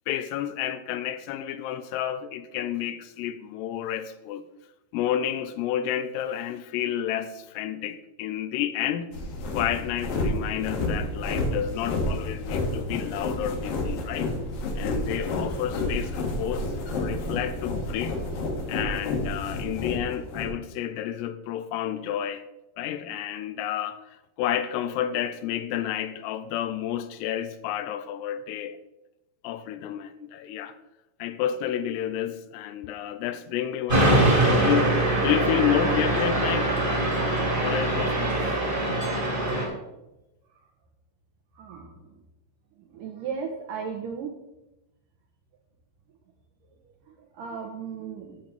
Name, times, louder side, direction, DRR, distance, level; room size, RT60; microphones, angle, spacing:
voice 1, 0.1-4.4 4.9-9.1 9.5-14.3 14.8-16.7 17.0-18.2 18.7-22.4 22.8-28.8 29.4-30.8 31.2-34.9 35.2-36.7 37.6-38.4, left 10 dB, 90° left, 2.7 m, -30 dB
sound 1, 9.1-20.5, left 2 dB, 65° left, 3.0 m, -30 dB
sound 2, 33.9-39.6, right 2 dB, 20° right, 1.4 m, -23 dB
voice 2, 41.6-41.9 42.9-44.3 47.3-48.4, right 6 dB, 75° right, 2.1 m, -35 dB
8.7 x 7.4 x 5.2 m
omnidirectional pair, 4.7 m